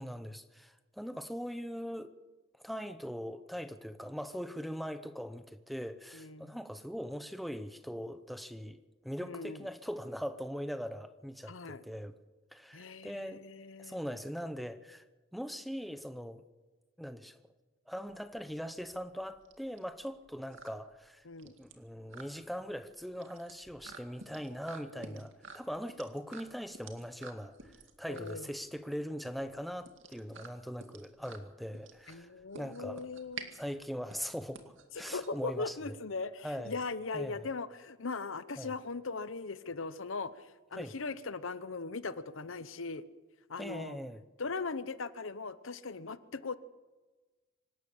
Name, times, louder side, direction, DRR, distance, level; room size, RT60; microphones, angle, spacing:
voice 1, 0.0-2.1 2.6-12.1 12.5-13.4 13.8-15.0 15.3-16.4 17.0-17.4 17.9-32.3 32.6-33.0 33.5-35.9 36.4-36.8 37.1-37.5 38.6-38.7 40.7-40.9 43.6-44.2, equal, ahead, 0.8 m, -41 dB
voice 2, 6.1-6.6 9.2-9.6 11.4-11.8 12.7-14.0 21.2-21.5 24.9-25.1 28.1-28.5 32.1-33.6 35.0-43.0 43.5-44.0 44.4-46.5, left 4 dB, 80° left, 0.9 m, -39 dB
sound 1, 18.1-35.8, right 4 dB, 75° right, 2.3 m, -51 dB
25.5 x 12.5 x 8.6 m
head